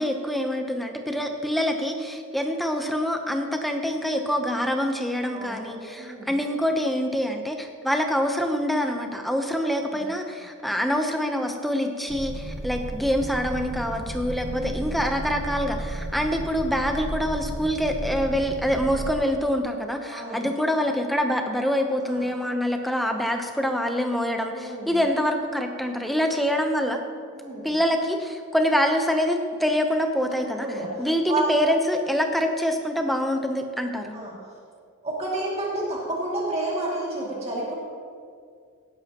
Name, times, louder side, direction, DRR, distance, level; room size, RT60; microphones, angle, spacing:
voice 1, 0.0-27.0 27.6-30.7 31.0-34.2, equal, ahead, 4 dB, 0.8 m, -25 dB
voice 2, 5.3-6.3 9.6-10.0 14.5-14.9 20.1-20.5 22.1-22.2 24.5-24.9 27.4-27.6 30.6-30.9 31.3-31.5 34.1-34.3 35.0-37.7, right 2 dB, 30° right, -5 dB, 2.4 m, -30 dB
sound 1, 12.1-19.2, right 1 dB, 60° right, 0.9 m, -33 dB
17.5 x 10.5 x 3.0 m, 2.2 s
head